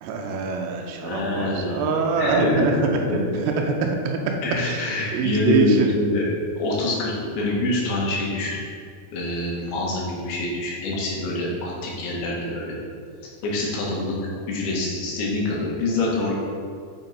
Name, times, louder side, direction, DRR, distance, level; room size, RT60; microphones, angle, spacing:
voice 1, 0.0-3.3 3.6-4.3 4.6-4.8 5.1-5.9, right 4 dB, 90° right, 2 dB, 2.7 m, -24 dB
voice 2, 1.0-1.9 2.2-2.7 3.1-3.6 4.4-6.3 6.5-8.6 9.1-12.8 13.4-14.2 14.5-16.3, left 2 dB, 70° left, -3 dB, 3.2 m, -25 dB
7.1 x 5.4 x 4.2 m, 2.1 s
omnidirectional pair, 4.7 m